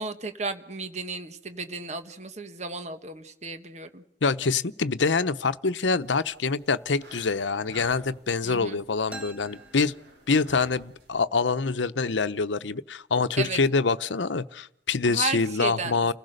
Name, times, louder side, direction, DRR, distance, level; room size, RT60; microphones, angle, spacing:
voice 1, 0.0-4.0 8.4-8.8 13.4-13.6 15.0-16.1, right 4 dB, 40° right, 1.4 m, -34 dB
voice 2, 4.2-9.9 10.3-16.1, left 4 dB, 85° left, 0.8 m, -25 dB
sound 1, 6.0-11.2, right 1 dB, 65° right, 6.4 m, -50 dB
sound 2, 9.1-10.8, right 2 dB, 5° right, 1.9 m, -45 dB
30.0 x 16.5 x 6.6 m
head